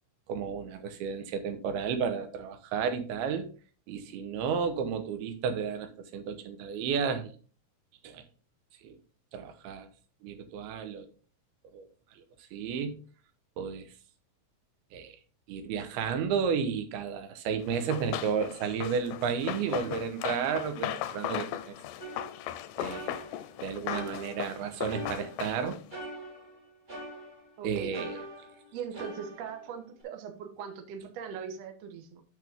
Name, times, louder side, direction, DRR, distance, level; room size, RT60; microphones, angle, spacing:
voice 1, 0.3-3.5 3.9-7.3 8.0-8.2 8.8-9.0 9.3-9.9 10.2-11.1 11.7-11.9 12.2-12.3 12.5-13.0 13.6-13.9 14.9-15.2 15.5-21.8 22.8-23.1 23.6-25.8 27.6-28.1, right 6 dB, 80° right, 2.9 m, -32 dB
Run, 17.7-25.9, left 13 dB, 85° left, 2.5 m, -37 dB
sound 1, 22.0-23.6 23.9-25.6 25.9-27.6 27.9-30.0, equal, 35° right, 0.7 m, -43 dB
voice 2, 27.6-28.1 28.7-32.2, right 7 dB, 65° right, 1.7 m, -40 dB
8.2 x 6.2 x 3.5 m
omnidirectional pair, 4.4 m